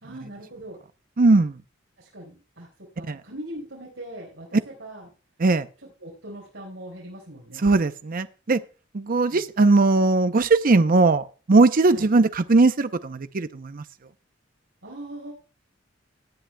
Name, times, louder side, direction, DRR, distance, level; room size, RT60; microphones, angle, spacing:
voice 1, 0.0-0.8 2.0-5.1 5.8-7.7 9.3-9.4 11.9-12.1 14.8-15.3, right 1 dB, 80° right, -2 dB, 4.3 m, -40 dB
voice 2, 1.2-1.6 3.1-3.2 5.4-5.7 7.6-8.6 8.9-13.8, right 3 dB, 45° right, 12 dB, 0.6 m, -19 dB
18.5 x 10.0 x 2.2 m, 0.35 s
head